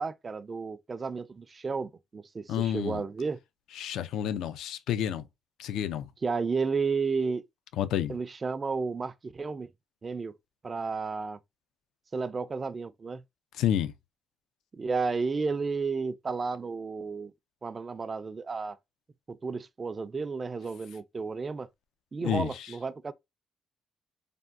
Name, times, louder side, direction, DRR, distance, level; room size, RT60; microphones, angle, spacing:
voice 1, 0.0-3.4 6.2-7.4 8.1-9.7 10.0-10.3 10.6-11.4 12.1-13.2 14.7-17.3 17.6-18.8 19.3-21.7 22.1-23.1, right 4 dB, 35° right, 0.3 m, -32 dB
voice 2, 2.5-3.0 3.8-5.2 5.6-6.1 7.8-8.2 13.6-13.9 22.2-22.5, left 10 dB, 85° left, 0.4 m, -29 dB
3.4 x 2.2 x 2.4 m
cardioid pair, 90°, 0 cm